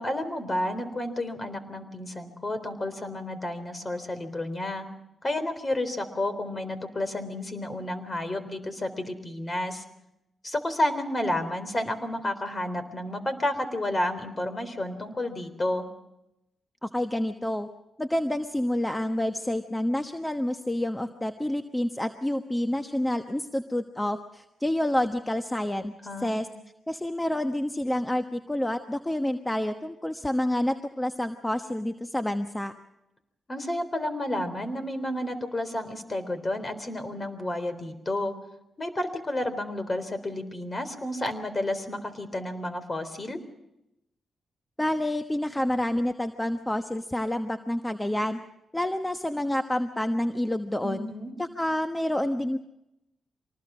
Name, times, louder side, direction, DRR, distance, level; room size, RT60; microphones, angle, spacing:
voice 1, 0.0-4.9 5.2-9.8 10.4-15.9 26.0-26.5 33.5-38.3 38.8-43.4 50.8-51.3, left 1 dB, 35° left, 10 dB, 3.6 m, -31 dB
voice 2, 16.8-17.7 18.0-25.9 26.2-26.5 26.9-32.7 44.8-48.4 48.7-51.1 51.4-52.6, left 1 dB, 15° left, 7 dB, 1.2 m, -28 dB
25.0 x 19.5 x 6.2 m, 0.89 s
supercardioid pair, 55°, 0 cm